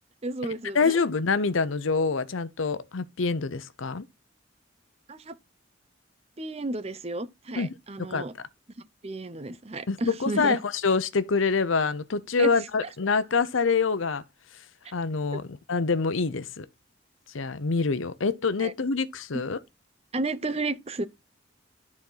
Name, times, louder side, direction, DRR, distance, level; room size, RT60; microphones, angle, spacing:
voice 1, 0.2-1.0 5.1-5.4 6.4-8.3 9.0-10.6 12.4-12.5 12.8-12.9 15.3-15.4 18.6-18.7 20.1-21.1, right 2 dB, 30° right, 0.7 m, -32 dB
voice 2, 0.7-4.1 7.6-7.7 8.1-8.2 9.9-14.2 14.9-16.7 17.3-19.6, left 4 dB, 85° left, 0.7 m, -26 dB
13.0 x 4.3 x 3.9 m
head